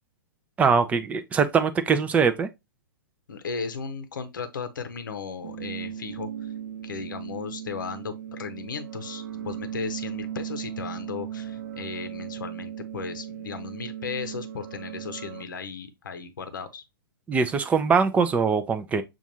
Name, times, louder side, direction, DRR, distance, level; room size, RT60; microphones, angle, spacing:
voice 1, 0.6-2.5 17.3-19.0, right 5 dB, 10° right, 0.5 m, -22 dB
voice 2, 3.3-6.5 6.8-16.8, left 5 dB, 65° left, 0.7 m, -36 dB
sound 1, 5.4-15.4, right 10 dB, 55° right, 0.7 m, -37 dB
7.0 x 2.5 x 2.8 m
figure-of-eight pair, 115°, 12 cm